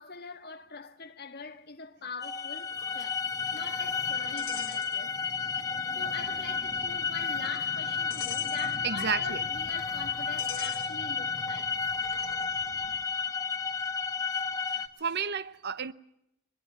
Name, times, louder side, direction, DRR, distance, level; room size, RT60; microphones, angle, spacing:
voice 1, 0.0-5.2 5.9-11.8, left 5 dB, 45° left, 1.8 m, -43 dB
sound 1, 2.2-14.9, left 5 dB, 15° left, 1.4 m, -32 dB
sound 2, 2.7-5.4 5.6-5.8 6.6-12.5, left 9 dB, 75° left, 2.6 m, -46 dB
sound 3, 6.2-14.3, equal, ahead, 7.3 m, -59 dB
voice 2, 8.8-9.4 14.7-15.9, right 6 dB, 50° right, 0.8 m, -32 dB
23.5 x 22.0 x 7.3 m
head